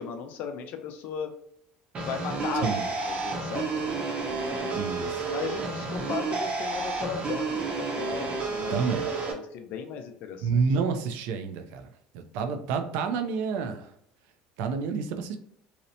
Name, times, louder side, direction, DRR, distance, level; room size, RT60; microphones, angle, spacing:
voice 1, 0.0-1.3 2.0-4.8 5.3-10.6, left 6 dB, 60° left, 6 dB, 0.5 m, -37 dB
sound 1, 1.9-9.3, right 4 dB, 35° right, 0.7 m, -31 dB
voice 2, 4.5-5.3 8.7-9.2 10.4-11.9 12.1-13.9 14.6-15.4, right 5 dB, 75° right, 7 dB, 0.4 m, -29 dB
2.8 x 2.0 x 2.6 m, 0.66 s
supercardioid pair, 110°, 3 cm